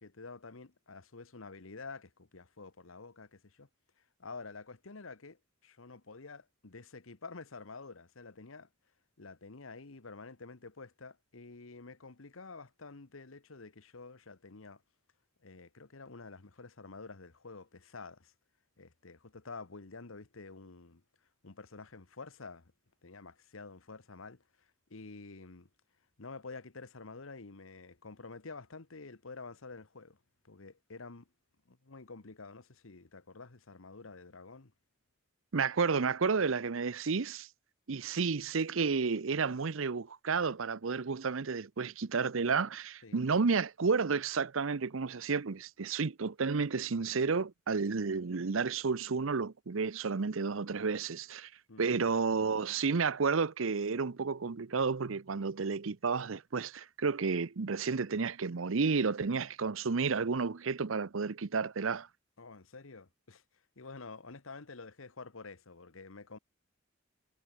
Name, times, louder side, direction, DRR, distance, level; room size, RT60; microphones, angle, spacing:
voice 1, 0.0-3.7 4.2-8.7 9.2-14.8 15.4-18.3 18.8-21.0 21.4-22.7 23.0-25.7 26.2-30.2 30.4-31.3 31.7-34.7 43.0-43.3 51.7-51.8 62.4-63.4 63.8-66.4, left 4 dB, 80° left, 1.3 m, -49 dB
voice 2, 35.5-37.5 37.9-51.5 51.8-62.1, right 5 dB, 80° right, 0.7 m, -31 dB
head